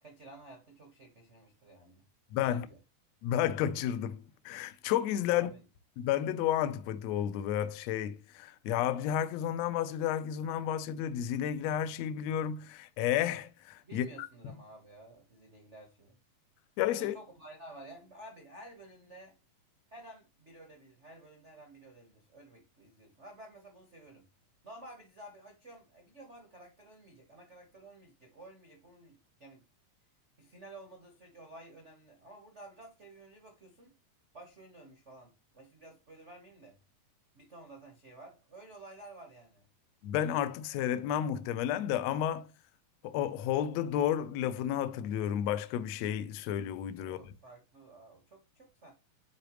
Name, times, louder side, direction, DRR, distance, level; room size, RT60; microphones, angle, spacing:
voice 1, 0.0-2.0 2.4-2.8 5.3-5.6 13.8-16.2 17.0-19.3 19.9-24.2 24.6-29.6 30.4-33.9 34.3-36.8 37.3-39.7 47.0-48.9, right 2 dB, 55° right, 0.7 m, -52 dB
voice 2, 2.3-2.7 3.2-5.5 6.0-14.0 16.8-17.1 40.0-42.5 43.0-47.2, left 10 dB, 80° left, 1.5 m, -31 dB
9.9 x 3.9 x 3.1 m
omnidirectional pair, 3.9 m